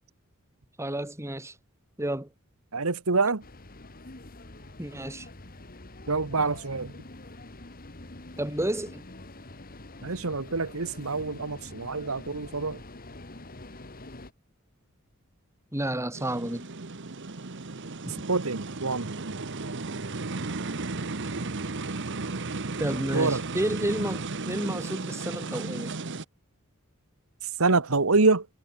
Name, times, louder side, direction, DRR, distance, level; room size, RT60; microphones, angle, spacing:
voice 1, 0.8-1.6 2.0-2.3 4.8-5.3 8.4-9.0 15.7-16.7 22.8-26.0, right 1 dB, 15° right, 2.3 m, -31 dB
voice 2, 2.7-3.4 6.1-6.9 10.0-12.8 18.3-19.6 23.1-23.5 27.6-28.5, right 3 dB, 80° right, 1.5 m, -26 dB
sound 1, 3.4-14.3, left 2 dB, 40° left, 2.2 m, -46 dB
sound 2, 16.1-26.2, right 3 dB, 60° right, 1.2 m, -34 dB
head